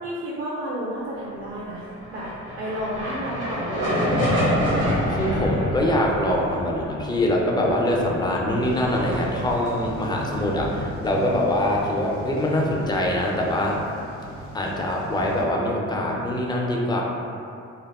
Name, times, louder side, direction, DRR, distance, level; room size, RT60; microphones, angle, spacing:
voice 1, 0.0-1.8 2.1-2.3 2.6-4.2, right 1 dB, 45° right, -7 dB, 0.5 m, -31 dB
sound 1, 1.9-10.3, equal, 85° right, 1.0 m, -27 dB
voice 2, 5.1-13.8 14.5-17.0, left 1 dB, 15° left, -1 dB, 0.3 m, -23 dB
sound 2, 8.6-15.4, equal, 60° right, 0.9 m, -37 dB
2.3 x 2.0 x 3.4 m, 2.6 s
cardioid pair, 90°, 30 cm